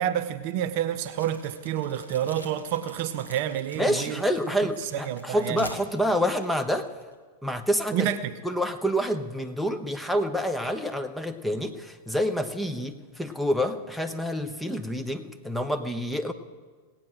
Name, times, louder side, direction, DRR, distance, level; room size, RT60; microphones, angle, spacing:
voice 1, 0.0-4.2 4.8-5.6 7.9-8.3, right 10 dB, 45° right, 11 dB, 0.7 m, -29 dB
sound 1, 1.1-7.2, left 1 dB, 85° left, 1.2 m, -46 dB
voice 2, 3.8-6.9 7.4-8.1 8.4-16.3, equal, ahead, 6 dB, 0.9 m, -27 dB
18.0 x 8.8 x 6.3 m, 1.5 s
figure-of-eight pair, 90°, 0 cm